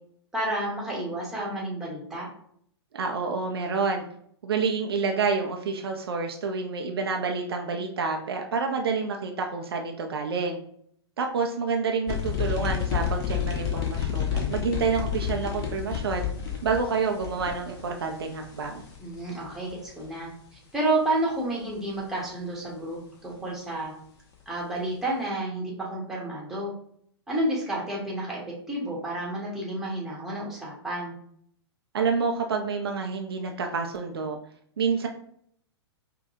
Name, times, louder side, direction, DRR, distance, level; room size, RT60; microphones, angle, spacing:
voice 1, 0.3-2.3 19.0-23.9 24.5-26.7 27.3-31.1, right 1 dB, 5° right, -5 dB, 1.2 m, -30 dB
voice 2, 2.9-4.0 4.4-10.6 11.2-16.3 16.6-18.8 31.9-34.4 34.8-35.1, right 5 dB, 60° right, 3 dB, 0.5 m, -28 dB
sound 1, 12.1-20.1, left 8 dB, 25° left, 0.8 m, -30 dB
5.1 x 2.2 x 2.7 m, 0.65 s
figure-of-eight pair, 110°, 14 cm